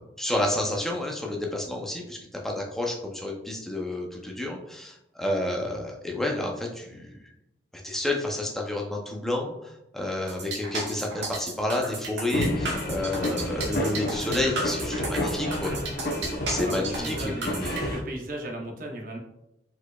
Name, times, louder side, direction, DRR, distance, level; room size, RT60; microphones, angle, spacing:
voice 1, 0.0-2.2 2.4-7.2 7.8-15.7 16.5-17.2 17.4-17.9, left 1 dB, ahead, -1 dB, 0.6 m, -30 dB
sound 1, 10.3-17.8, right 2 dB, 75° right, 1.5 m, -34 dB
sound 2, 12.3-18.0, left 1 dB, 50° left, 0.9 m, -30 dB
voice 2, 15.4-15.8 16.6-17.5 17.9-19.2, right 1 dB, 45° right, 1 dB, 0.8 m, -36 dB
4.6 x 4.4 x 2.3 m, 0.88 s
head